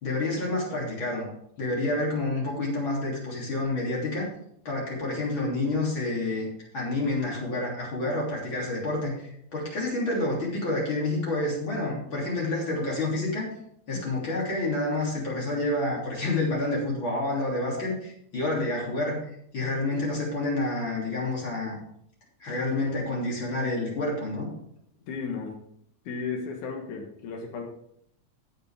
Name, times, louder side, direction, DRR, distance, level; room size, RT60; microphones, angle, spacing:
voice 1, 0.0-1.3 1.6-4.3 4.7-6.5 6.7-13.5 13.9-19.2 19.5-21.8 22.4-24.5, left 2 dB, 40° left, -3 dB, 3.8 m, -28 dB
voice 2, 25.1-25.6 26.1-27.6, left 5 dB, 85° left, 2 dB, 2.9 m, -34 dB
15.5 x 6.9 x 3.7 m, 0.70 s
omnidirectional pair, 3.4 m